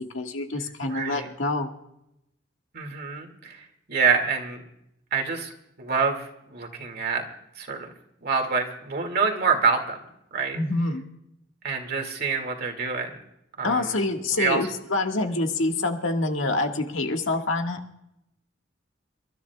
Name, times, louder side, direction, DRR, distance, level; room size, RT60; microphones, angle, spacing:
voice 1, 0.1-1.7 10.5-11.0 13.6-17.8, left 2 dB, 85° left, 3 dB, 1.7 m, -26 dB
voice 2, 0.9-1.3 2.7-4.6 5.1-5.5 5.8-7.2 7.6-7.9 8.2-10.0 10.3-10.6 11.6-13.2 13.6-14.0 14.4-14.6, right 5 dB, 55° right, 3 dB, 2.2 m, -26 dB
29.5 x 13.0 x 2.4 m, 0.81 s
head